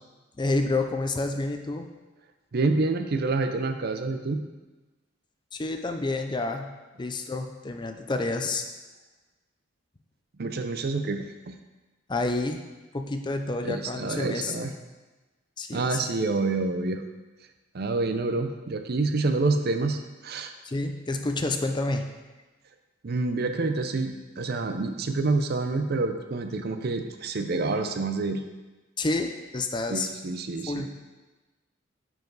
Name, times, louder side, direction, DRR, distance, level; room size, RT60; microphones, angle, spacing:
voice 1, 0.4-1.9 5.5-6.7 7.0-8.7 12.1-12.6 12.9-14.5 15.6-16.0 20.6-22.1 29.0-30.1 30.7-30.9, left 2 dB, 25° left, 6 dB, 0.5 m, -29 dB
voice 2, 2.5-4.4 10.4-11.5 13.6-14.7 15.7-17.0 17.7-20.5 23.0-28.4 29.9-30.9, right 3 dB, 55° right, 7 dB, 0.6 m, -27 dB
10.0 x 4.7 x 4.0 m, 1.2 s
head